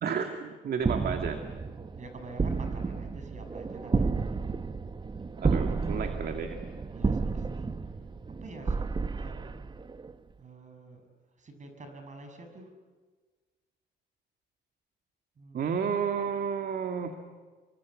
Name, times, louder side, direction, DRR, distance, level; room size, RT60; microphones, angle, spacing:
voice 1, 0.0-1.4 5.4-6.6 15.5-17.1, right 6 dB, 60° right, 6 dB, 2.0 m, -31 dB
sound 1, 0.8-10.1, right 4 dB, 25° right, 1.0 m, -31 dB
voice 2, 2.0-4.4 5.0-5.1 5.7-6.5 6.9-7.7 8.4-8.9 9.2-9.6 10.4-11.0 11.4-12.7 15.4-15.8, right 3 dB, 40° right, 6 dB, 6.6 m, -48 dB
27.5 x 25.0 x 8.4 m, 1.4 s
cardioid pair, 105°, 18 cm